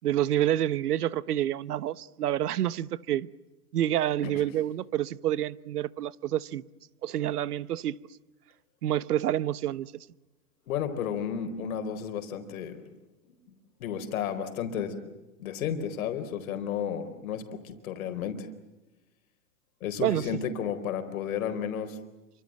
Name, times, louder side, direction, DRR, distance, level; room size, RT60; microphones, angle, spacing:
voice 1, 0.0-3.3 3.7-6.6 7.0-8.0 8.8-9.9 20.0-20.4, right 12 dB, 75° right, 1.2 m, -28 dB
voice 2, 10.7-12.9 13.8-15.0 15.4-18.5 19.8-22.0, left 8 dB, 60° left, 4.4 m, -32 dB
28.5 x 26.0 x 7.6 m
hypercardioid pair, 135°, 46 cm